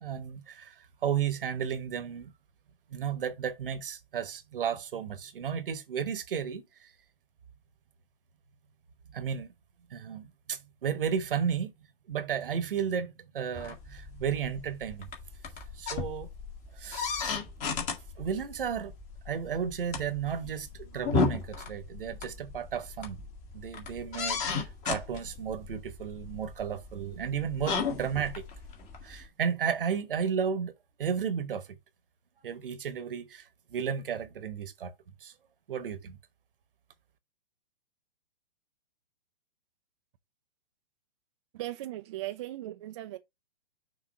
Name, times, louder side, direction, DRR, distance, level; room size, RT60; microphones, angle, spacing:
voice 1, 0.0-2.3 2.9-6.9 9.1-9.5 9.9-11.7 12.1-15.1 15.8-16.3 16.7-17.3 18.2-18.9 19.2-23.2 23.5-28.5 29.0-30.7 31.0-31.8 32.4-34.9 35.2-35.3 35.7-36.2, right 7 dB, 65° right, 1.1 m, -33 dB
sound 1, 13.5-29.3, left 5 dB, 25° left, 1.6 m, -36 dB
voice 2, 41.5-43.2, right 15 dB, 30° right, 0.4 m, -38 dB
6.4 x 2.9 x 5.5 m
figure-of-eight pair, 120°, 29 cm